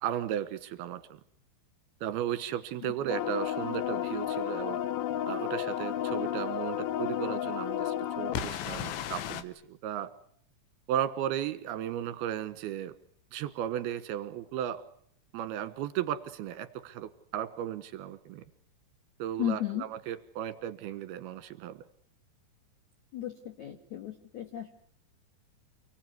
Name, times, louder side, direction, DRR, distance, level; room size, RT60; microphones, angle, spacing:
voice 1, 0.0-1.2 2.0-4.8 5.3-10.1 10.9-13.0 13.3-14.8 15.3-18.4 19.2-21.8, right 11 dB, 65° right, 14 dB, 3.1 m, -35 dB
sound 1, 3.1-9.4, left 11 dB, 80° left, 3.6 m, -32 dB
voice 2, 19.4-19.9 23.1-24.7, left 12 dB, 55° left, 5 dB, 2.3 m, -34 dB
29.0 x 18.5 x 9.6 m, 0.64 s
omnidirectional pair, 5.3 m